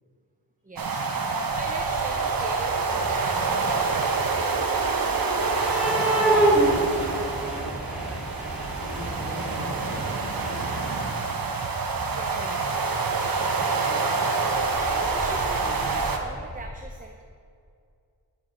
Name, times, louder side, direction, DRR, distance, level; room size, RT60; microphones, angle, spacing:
voice 1, 0.6-4.7 12.1-12.8 13.1-13.4 13.8-17.2, right 2 dB, 20° right, 4 dB, 0.7 m, -41 dB
sound 1, 0.8-16.2, right 4 dB, 60° right, 1.1 m, -27 dB
sound 2, 1.5-2.2 2.5-3.8 5.2-11.4 12.7-12.8 13.4-13.5 14.5-16.7, right 1 dB, ahead, 2.2 m, -29 dB
voice 2, 6.6-8.2 8.8-11.3, left 1 dB, 60° left, -5 dB, 2.9 m, -42 dB
10.0 x 7.2 x 5.1 m, 2.3 s
wide cardioid pair, 60°, 38 cm